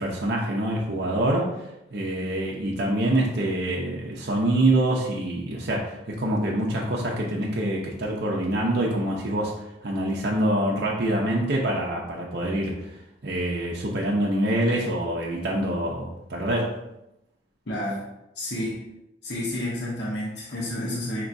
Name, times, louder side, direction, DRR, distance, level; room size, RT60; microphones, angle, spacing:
voice 1, 0.0-1.5 1.9-9.5 9.8-12.9 13.2-16.8, right 1 dB, 55° right, -3 dB, 0.7 m, -25 dB
voice 2, 17.7-18.0 18.3-18.8 19.2-21.2, left 1 dB, 65° left, -6 dB, 1.1 m, -30 dB
5.8 x 3.0 x 2.6 m, 0.89 s
head